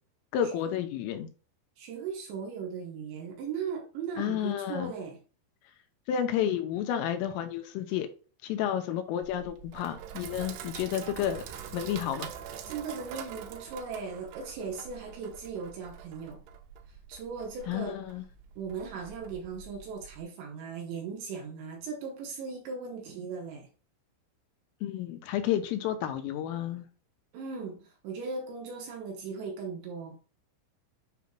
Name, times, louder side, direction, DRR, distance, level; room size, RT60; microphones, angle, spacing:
voice 1, 0.3-1.3 4.2-4.9 6.1-8.1 8.4-11.5 11.7-12.3 17.7-18.2 24.8-26.9, left 10 dB, 80° left, 3.3 m, -31 dB
voice 2, 1.8-5.2 12.7-16.4 17.1-18.0 18.6-23.7 27.3-30.2, right 5 dB, 70° right, 2.9 m, -38 dB
Sink (filling or washing), 9.2-20.2, right 8 dB, 90° right, 2.3 m, -45 dB
9.5 x 5.5 x 2.2 m
omnidirectional pair, 6.0 m